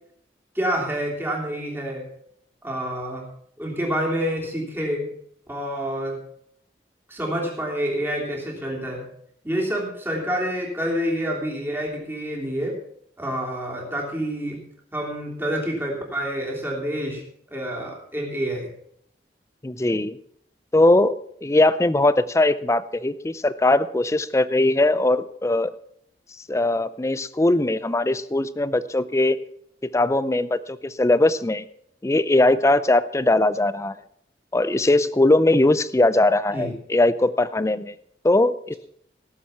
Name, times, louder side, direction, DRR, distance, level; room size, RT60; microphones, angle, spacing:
voice 1, 0.5-2.1 2.6-3.2 3.6-5.1 5.5-6.2 7.1-9.1 9.4-12.8 13.2-14.6 14.9-17.2 17.5-18.7 36.5-36.7, equal, 10° right, -2 dB, 3.3 m, -27 dB
voice 2, 19.6-20.2 20.7-21.1 21.4-25.7 26.5-29.4 29.9-31.6 32.0-34.0 34.5-37.9 38.2-38.8, left 2 dB, 15° left, 15 dB, 0.5 m, -20 dB
17.0 x 7.4 x 5.7 m, 0.69 s
head